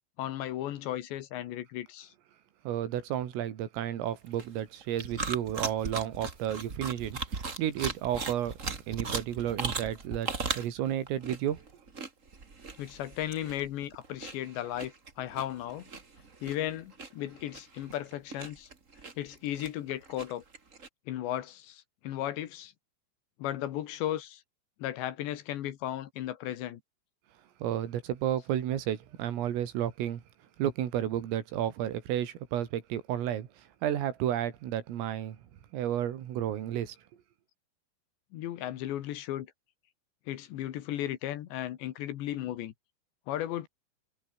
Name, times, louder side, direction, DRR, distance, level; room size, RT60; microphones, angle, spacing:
voice 1, 0.2-2.1 12.8-15.8 16.4-18.7 19.2-20.4 21.1-22.7 23.4-24.4 24.8-26.8 38.3-39.5 40.3-42.7 43.3-43.7, left 12 dB, 70° left, 3.4 m, -35 dB
voice 2, 2.7-8.6 8.9-11.6 27.6-30.2 30.6-35.4 35.7-37.0, right 11 dB, 90° right, 5.2 m, -32 dB
sound 1, 4.1-20.9, right 4 dB, 65° right, 0.7 m, -38 dB
omnidirectional pair, 5.8 m